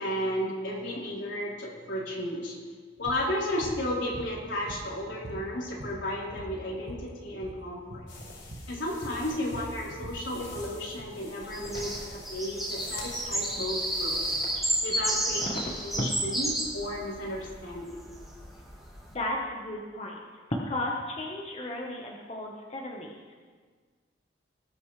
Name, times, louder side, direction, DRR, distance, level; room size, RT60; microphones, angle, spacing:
voice 1, 0.0-2.6 3.0-8.1 8.7-14.3 14.8-18.0, left 1 dB, 80° left, -5 dB, 3.9 m, -33 dB
sound 1, 3.0-3.2 3.6-3.8 4.1-5.0 5.2-7.1 7.3-7.6 7.9-8.1 8.5-8.7 9.0-10.7, right 1 dB, 65° right, 1.3 m, -42 dB
sound 2, 8.1-14.6, left 2 dB, 60° left, 4.4 m, -46 dB
sound 3, 11.4-19.1, right 1 dB, ahead, 2.3 m, -32 dB
voice 2, 15.4-16.1 19.1-20.2 20.7-23.3, left 1 dB, 35° left, -2 dB, 1.1 m, -34 dB
19.5 x 9.3 x 3.3 m, 1.5 s
head